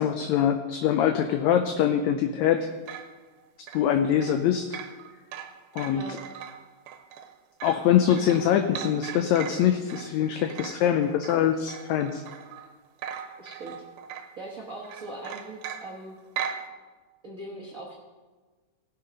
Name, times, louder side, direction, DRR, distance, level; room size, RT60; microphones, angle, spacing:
voice 1, 0.0-2.7 3.7-4.8 5.8-6.1 7.6-12.2, left 9 dB, 75° left, 7 dB, 1.8 m, -23 dB
sound 1, 2.6-12.7 13.0-14.5 14.8-16.7, right 8 dB, 85° right, 2.3 m, -40 dB
voice 2, 13.4-13.8 14.4-16.2 17.2-18.0, right 2 dB, 40° right, -3 dB, 1.2 m, -40 dB
17.5 x 6.8 x 5.3 m, 1.3 s
omnidirectional pair, 3.6 m